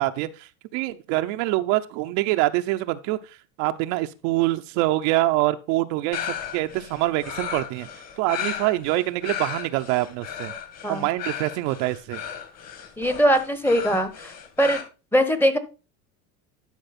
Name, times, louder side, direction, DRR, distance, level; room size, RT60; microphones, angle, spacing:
voice 1, 0.0-3.2 3.6-7.9 8.2-10.5 10.9-12.2, right 17 dB, 60° right, 8 dB, 0.7 m, -25 dB
sound 1, 6.1-14.8, left 9 dB, 40° left, 2.2 m, -35 dB
voice 2, 13.0-14.3 14.6-14.8 15.1-15.6, equal, 5° left, 10 dB, 1.0 m, -21 dB
12.0 x 4.8 x 4.2 m, 0.31 s
supercardioid pair, 110°, 41 cm